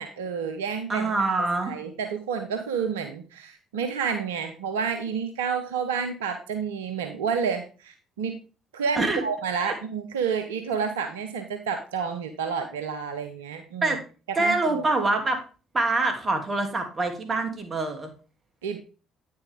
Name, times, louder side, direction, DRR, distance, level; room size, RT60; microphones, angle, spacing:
voice 1, 0.0-1.1 1.4-8.4 8.7-14.0 14.3-14.9 18.6-18.8, right 6 dB, 85° right, 6 dB, 0.8 m, -30 dB
voice 2, 0.9-1.8 8.9-9.2 9.6-9.7 13.8-14.0 14.4-15.4 15.7-18.1, right 2 dB, 35° right, 5 dB, 2.5 m, -25 dB
9.3 x 6.5 x 3.5 m, 0.34 s
hypercardioid pair, 50°, 0 cm